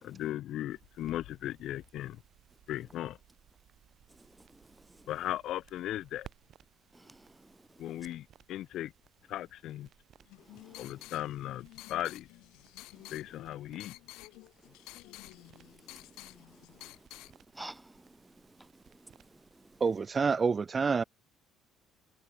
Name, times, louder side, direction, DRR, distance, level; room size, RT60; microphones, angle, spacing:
voice 1, 0.0-2.2 2.7-3.2 5.1-6.3 7.8-8.9 9.3-9.9 10.8-12.3 13.1-13.9, left 13 dB, 55° left, 2.9 m, -37 dB
sound 1, 0.7-20.3, right 10 dB, 45° right, 5.3 m, -62 dB
voice 2, 4.5-5.0 6.9-7.6 10.5-10.8 13.0-13.1 15.6-16.2 16.5-16.9 17.5-19.2 19.5-19.7, right 2 dB, 5° right, 1.3 m, -52 dB
sound 2, 10.3-17.3, left 20 dB, 90° left, 2.6 m, -51 dB
voice 3, 19.8-21.0, right 5 dB, 25° right, 0.7 m, -27 dB
cardioid pair, 155°, 0 cm